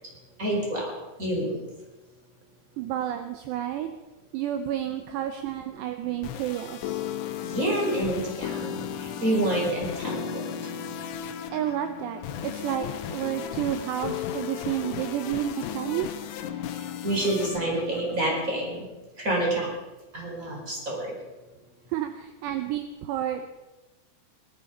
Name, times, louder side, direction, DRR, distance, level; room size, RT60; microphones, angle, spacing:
voice 1, 0.4-0.9 1.2-1.7 7.4-10.4 16.7-18.9 19.2-19.7 20.1-21.2, right 1 dB, 20° right, -1 dB, 4.5 m, -28 dB
voice 2, 2.8-3.9 4.3-7.0 11.5-16.1 21.9-23.6, right 11 dB, 80° right, 7 dB, 2.7 m, -30 dB
sound 1, 6.0-18.8, left 9 dB, 80° left, 3.3 m, -35 dB
20.0 x 12.5 x 5.5 m, 1.1 s
omnidirectional pair, 5.4 m